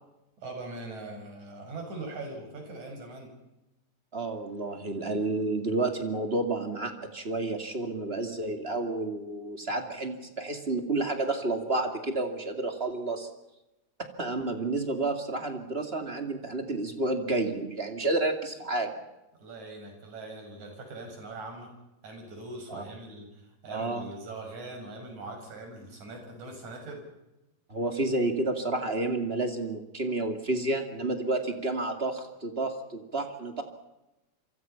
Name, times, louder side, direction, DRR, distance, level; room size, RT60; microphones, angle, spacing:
voice 1, 0.4-3.3 19.4-21.7 22.0-27.0, right 2 dB, 45° right, 3 dB, 7.6 m, -41 dB
voice 2, 4.1-13.3 14.2-18.9 22.7-22.8 23.7-24.0 27.7-33.6, right 2 dB, 30° right, 5 dB, 1.2 m, -30 dB
27.5 x 25.0 x 5.7 m, 0.96 s
omnidirectional pair, 4.5 m